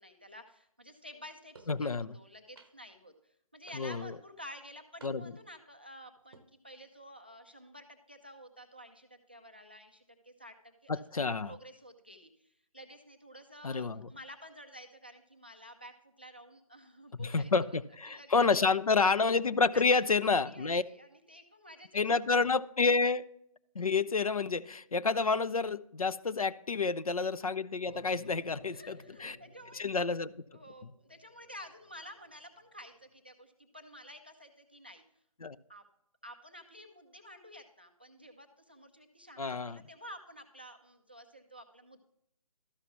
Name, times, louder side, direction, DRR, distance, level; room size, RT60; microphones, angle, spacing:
voice 1, 0.0-3.1 3.5-17.8 18.1-18.4 19.2-19.9 20.2-22.1 27.9-29.9 30.5-35.0 35.7-35.8 36.2-42.0, equal, 15° right, 5 dB, 0.3 m, -51 dB
sound 1, 1.5-1.8 2.6-3.0 3.7-4.2 5.0-5.5 6.2-6.5, right 4 dB, 40° right, 0.7 m, -57 dB
voice 2, 1.7-2.1 3.7-4.1 5.0-5.2 10.9-11.5 13.6-14.1 17.2-20.8 21.9-23.2 23.8-29.4 29.7-30.3 35.4-35.6 39.4-39.8, left 4 dB, 70° left, 14 dB, 0.5 m, -29 dB
sound 2, 27.8-32.9, left 2 dB, 30° left, 0.9 m, -57 dB
12.5 x 5.7 x 2.9 m, 0.72 s
figure-of-eight pair, 150°, 19 cm